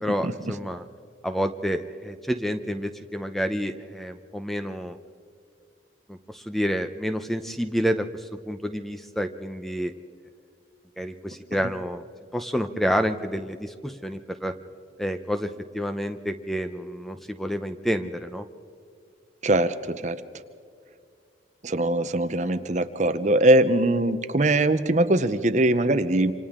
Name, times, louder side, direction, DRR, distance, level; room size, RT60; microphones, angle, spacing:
voice 1, 0.0-0.9 1.2-5.0 6.1-9.9 11.0-12.0 12.3-14.5 15.0-18.4, equal, ahead, 8 dB, 0.6 m, -29 dB
voice 2, 19.4-20.2 21.6-26.3, right 1 dB, 40° right, 11 dB, 0.7 m, -21 dB
27.5 x 26.0 x 3.7 m, 2.3 s
head